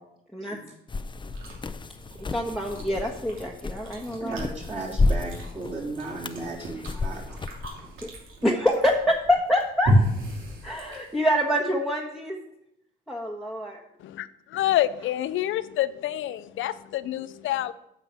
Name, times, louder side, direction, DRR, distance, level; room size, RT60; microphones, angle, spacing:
sound 1, 0.9-7.7, left 3 dB, 25° left, 0.6 m, -31 dB
Chewing mastication, 1.2-11.4, equal, 80° right, 2.9 m, -32 dB
voice 1, 2.3-4.4 8.0-8.1 8.4-9.9 10.6-12.4 13.1-13.8, equal, ahead, 1.4 m, -26 dB
voice 2, 4.2-7.2, right 2 dB, 35° right, 3.8 m, -35 dB
voice 3, 14.0-17.7, left 13 dB, 80° left, 0.6 m, -27 dB
9.1 x 5.9 x 6.9 m
cardioid pair, 90°, 20 cm